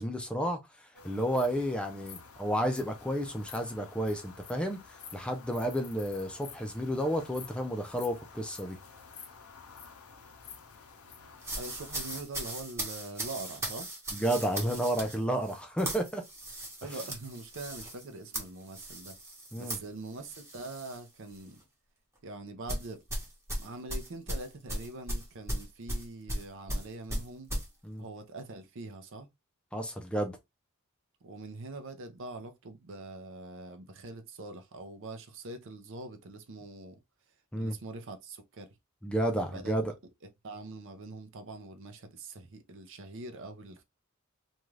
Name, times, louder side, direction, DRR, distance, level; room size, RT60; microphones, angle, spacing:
voice 1, 0.0-4.8 5.1-8.8 14.1-16.2 19.5-19.8 27.8-28.0 29.7-30.4 37.5-37.8 39.0-39.9, equal, 5° left, 0.4 m, -31 dB
sound 1, 0.9-12.2, left 6 dB, 75° left, 0.6 m, -50 dB
sound 2, 11.4-21.0 21.3-21.6 22.7-27.7, right 1 dB, 15° right, 0.9 m, -37 dB
voice 2, 11.5-13.9 16.8-19.2 19.6-21.6 22.2-23.0 23.6-27.5 28.0-29.3 31.2-37.0 37.6-38.7 39.5-39.7 40.4-43.8, right 2 dB, 60° right, 0.6 m, -43 dB
2.6 x 2.3 x 3.1 m
head